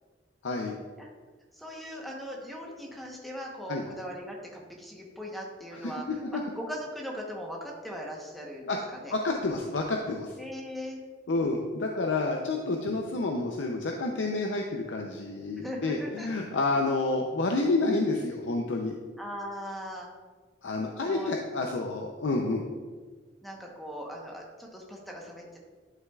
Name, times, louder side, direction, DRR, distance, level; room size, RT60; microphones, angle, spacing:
voice 1, 0.4-0.7 3.7-3.8 5.8-5.9 8.7-8.8 9.1-10.4 11.3-18.9 20.6-22.6, left 2 dB, 85° left, 1 dB, 0.6 m, -29 dB
voice 2, 1.5-9.1 10.4-11.0 15.6-16.4 19.2-20.1 21.0-21.3 23.4-25.6, equal, ahead, -1 dB, 1.0 m, -39 dB
11.0 x 5.6 x 2.4 m, 1.4 s
head